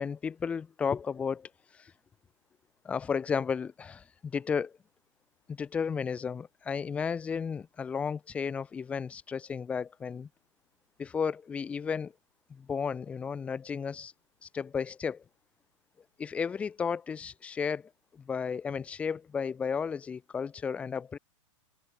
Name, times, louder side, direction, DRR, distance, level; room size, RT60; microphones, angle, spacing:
voice 1, 0.0-1.5 1.8-1.9 2.8-4.7 5.5-10.3 11.0-12.1 12.5-14.1 14.4-15.2 16.2-21.2, left 6 dB, 5° left, 0.5 m, -33 dB
supercardioid pair, 170°, 17 cm